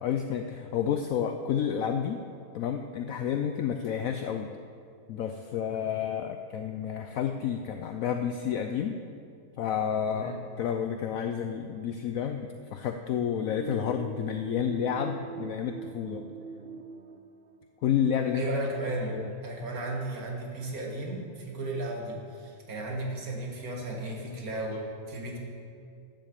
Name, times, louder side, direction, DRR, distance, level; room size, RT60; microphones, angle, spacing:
voice 1, 0.0-2.2 2.5-4.5 5.1-9.0 9.6-16.2 17.8-18.4 19.0-19.3, left 8 dB, 65° left, 6 dB, 0.9 m, -30 dB
sound 1, 13.4-17.8, right 6 dB, 85° right, 0.5 m, -42 dB
voice 2, 18.3-19.2 19.4-24.8 25.1-25.4, right 1 dB, 65° right, -1 dB, 2.3 m, -34 dB
12.0 x 7.6 x 7.5 m, 2.4 s
omnidirectional pair, 1.7 m